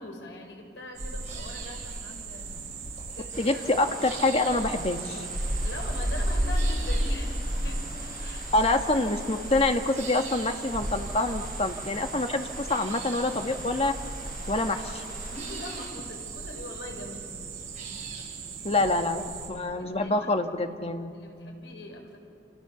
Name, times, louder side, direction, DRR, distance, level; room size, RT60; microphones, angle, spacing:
voice 1, 0.0-2.7 3.1-3.6 5.6-8.5 15.3-17.3 19.7-20.3 20.6-20.8 21.1-22.2, left 1 dB, 80° left, 1 dB, 5.9 m, -42 dB
sound 1, 0.9-19.5, right 1 dB, 40° right, 6.7 m, -34 dB
sound 2, 3.3-15.9, left 2 dB, 55° left, 7.0 m, -46 dB
voice 2, 3.4-5.2 8.5-13.9 14.5-15.0 18.6-21.1, left 2 dB, 35° left, 6 dB, 1.6 m, -26 dB
30.0 x 27.0 x 7.0 m, 2.4 s
head